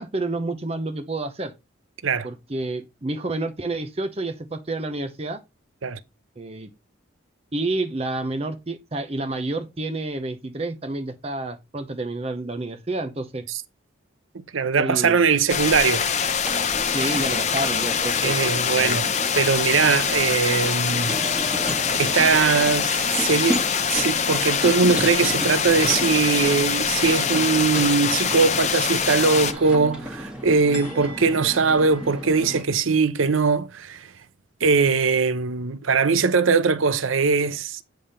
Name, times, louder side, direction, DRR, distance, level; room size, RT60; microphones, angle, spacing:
voice 1, 0.0-1.5 2.2-5.4 6.4-6.7 7.5-13.5 14.8-15.2 16.9-18.4 18.7-19.0, right 2 dB, 30° right, 0.7 m, -29 dB
voice 2, 14.5-16.0 18.2-19.1 19.4-21.2 22.0-23.6 23.9-34.1 34.6-37.8, right 5 dB, 85° right, 0.7 m, -21 dB
sound 1, 15.5-29.5, left 6 dB, 35° left, 0.7 m, -24 dB
sound 2, 16.4-32.6, equal, 5° right, 1.6 m, -34 dB
9.1 x 3.4 x 5.6 m
head